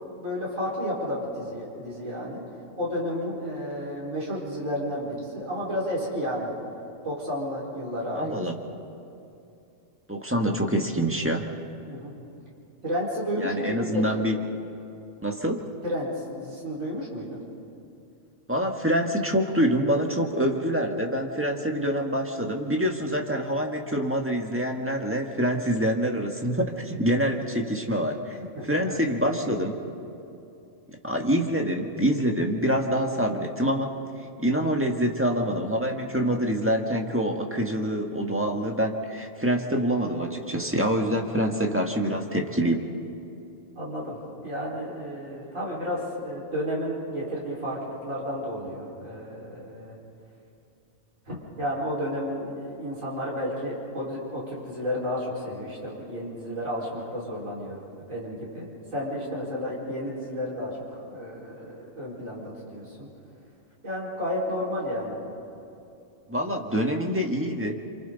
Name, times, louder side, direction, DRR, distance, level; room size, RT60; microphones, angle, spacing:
voice 1, 0.0-2.4 2.8-6.5 7.0-8.4 11.9-12.1 12.8-14.2 15.8-16.1 16.4-17.4 28.6-29.0 40.0-40.3 43.8-50.0 51.3-63.1 63.8-65.3, equal, 85° right, -6 dB, 5.4 m, -32 dB
voice 2, 8.1-8.5 10.1-11.5 13.4-14.4 15.2-15.7 18.5-28.4 28.7-29.8 31.0-33.9 34.4-42.8 66.3-67.7, equal, 10° right, 2 dB, 1.5 m, -26 dB
28.5 x 26.5 x 4.1 m, 2.7 s
omnidirectional pair, 1.4 m